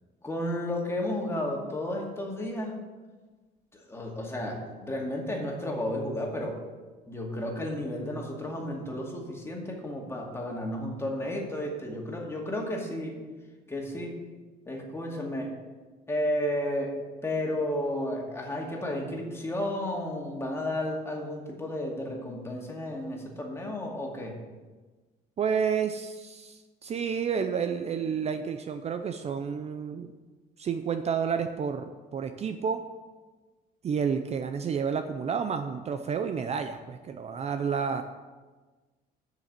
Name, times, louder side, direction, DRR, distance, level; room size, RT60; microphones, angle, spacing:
voice 1, 0.2-2.8 3.7-6.6 7.1-13.2 13.7-14.1 14.7-15.5 16.1-16.9 17.2-24.4, left 1 dB, 15° left, -1 dB, 2.2 m, -32 dB
voice 2, 25.4-30.1 30.6-32.8 33.8-38.0, right 6 dB, 40° right, 8 dB, 0.5 m, -30 dB
7.2 x 6.6 x 7.5 m, 1.3 s
cardioid pair, 110°, 17 cm